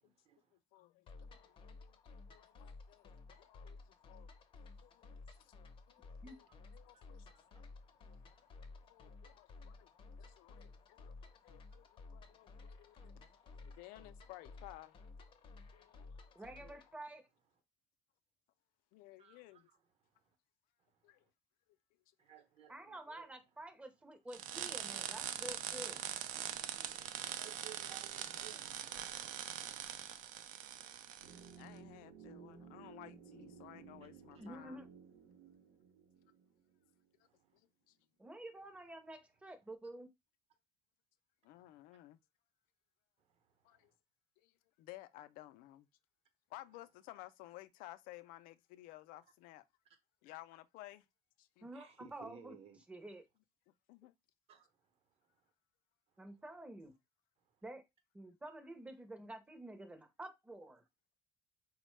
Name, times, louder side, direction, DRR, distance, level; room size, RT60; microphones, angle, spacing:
voice 1, 0.0-0.5 5.3-5.4 6.9-7.0 7.3-8.5 16.6-16.8 19.2-19.6 22.2-23.3 26.1-26.4 27.4-30.4 34.3-34.5 37.2-37.5 43.3-43.8 51.7-52.8 54.5-54.7, right 9 dB, 45° right, 0.8 m, -60 dB
voice 2, 0.5-4.3 4.6-5.5 5.9-7.3 8.9-9.9 10.2-11.2 11.4-13.3 13.6-15.0 15.7-16.3 18.9-19.7 21.0-21.3 22.3-22.4 29.9-30.3 30.7-31.0 31.3-34.8 37.5-38.0 41.4-42.2 43.6-43.9 44.4-45.9 46.5-49.6 50.2-51.1 51.4-51.7 53.9-54.1, left 16 dB, 90° left, 0.4 m, -56 dB
sound 1, 1.1-16.9, left 3 dB, 40° left, 0.6 m, -55 dB
voice 3, 16.3-17.2 22.7-26.0 34.4-34.9 38.2-40.1 51.6-52.6 52.9-53.2 56.2-56.9 57.6-57.8 58.1-60.8, right 1 dB, 10° right, 0.6 m, -49 dB
sound 2, 24.3-31.5, right 10 dB, 65° right, 0.4 m, -43 dB
sound 3, 31.2-37.2 37.5-37.6, right 6 dB, 90° right, 0.8 m, -56 dB
4.2 x 2.1 x 3.1 m
cardioid pair, 140°, 14 cm